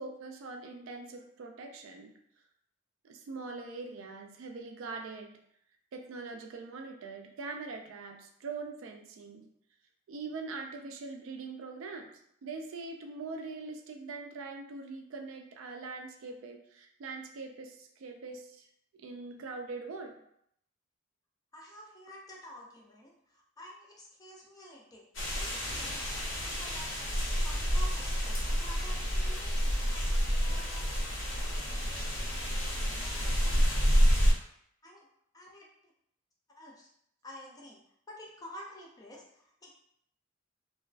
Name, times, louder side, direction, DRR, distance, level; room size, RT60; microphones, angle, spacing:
voice 1, 0.0-2.1 3.0-5.4 5.9-9.5 10.1-12.1 12.4-18.6 19.0-20.2, right 3 dB, 75° right, 3 dB, 0.4 m, -42 dB
voice 2, 21.5-25.0 25.3-30.2 30.5-30.6 32.8-34.1 34.8-35.1 35.3-35.7 36.6-36.9 37.2-37.8 38.1-39.7, equal, 20° left, -2 dB, 0.4 m, -50 dB
sound 1, 25.1-34.3, equal, 70° left, 0.7 m, -29 dB
2.3 x 2.3 x 2.3 m, 0.70 s
head